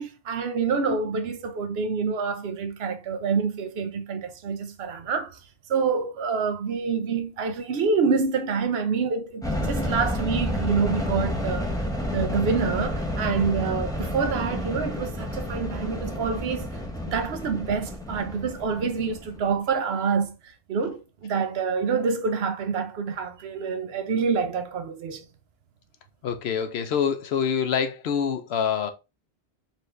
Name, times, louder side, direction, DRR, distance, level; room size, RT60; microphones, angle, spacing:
voice 1, 0.0-5.4 5.7-16.7 17.1-25.3, right 5 dB, 75° right, 0.9 m, -27 dB
sound 1, 9.4-19.6, equal, 5° left, 0.8 m, -30 dB
voice 2, 26.2-28.9, left 7 dB, 80° left, 0.9 m, -26 dB
4.2 x 2.7 x 3.2 m
omnidirectional pair, 1.1 m